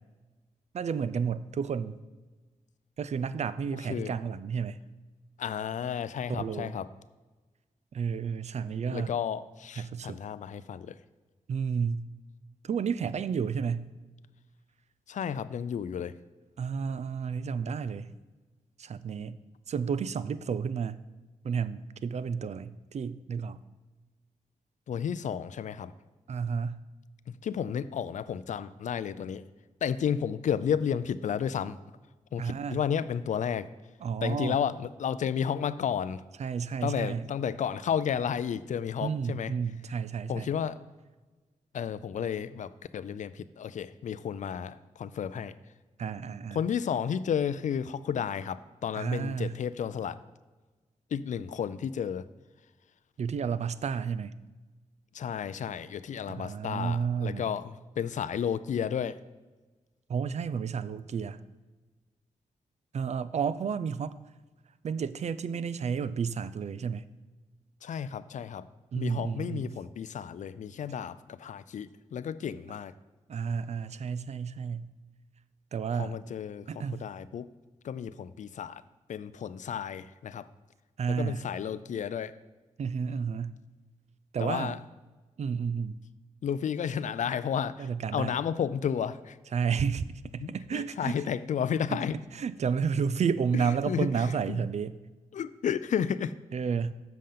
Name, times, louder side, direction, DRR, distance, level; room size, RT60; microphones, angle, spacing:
voice 1, 0.7-2.0 3.0-4.8 6.3-6.8 7.9-9.1 9.8-10.2 11.5-12.1 12.6-13.9 16.6-18.1 18.8-19.4 19.7-21.0 21.4-23.6 26.3-26.8 32.4-32.8 34.0-34.6 36.4-37.3 39.0-40.5 46.0-46.6 48.9-49.6 53.2-54.3 56.3-57.5 60.1-61.4 62.9-64.1 64.8-67.0 68.9-69.7 73.3-74.9 75.7-76.2 76.7-77.1 81.0-81.4 82.8-83.6 84.3-84.8 85.4-86.0 87.8-88.4 89.5-90.1 90.3-91.2 91.9-92.0 92.3-95.0 96.5-96.9, right 6 dB, 60° right, 14 dB, 0.4 m, -31 dB
voice 2, 5.4-6.9 8.9-11.0 15.1-16.2 24.9-25.9 27.3-29.4 29.8-31.8 32.3-33.7 34.2-36.2 36.8-39.5 40.3-40.8 41.7-45.5 46.5-50.2 51.1-52.3 55.1-59.2 67.8-68.7 69.0-72.9 76.0-76.7 77.0-77.5 77.8-78.8 79.1-80.5 81.1-82.3 84.4-84.8 86.4-89.4 90.4-92.2 93.5-94.6 95.3-96.3, left 8 dB, 65° left, 15 dB, 0.4 m, -32 dB
7.5 x 5.1 x 5.7 m, 1.2 s
cardioid pair, 50°, 13 cm